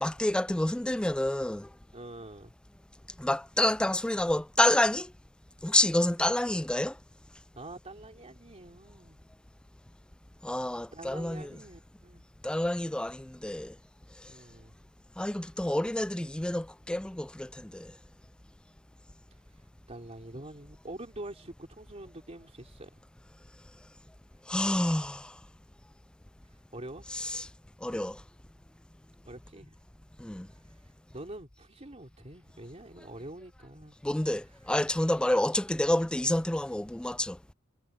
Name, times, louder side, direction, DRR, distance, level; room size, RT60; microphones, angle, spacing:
voice 1, 0.0-1.7 3.2-5.1 5.6-6.9 10.4-11.6 12.4-13.7 15.2-17.9 24.5-25.3 27.1-27.5 27.8-28.2 30.2-30.5 34.0-37.4, left 1 dB, 5° left, 0.3 m, -28 dB
voice 2, 1.9-2.5 7.6-9.2 10.9-12.2 14.3-14.7 19.9-22.9 26.7-27.1 29.3-29.8 31.1-34.0, right 1 dB, 30° right, 3.4 m, -45 dB
head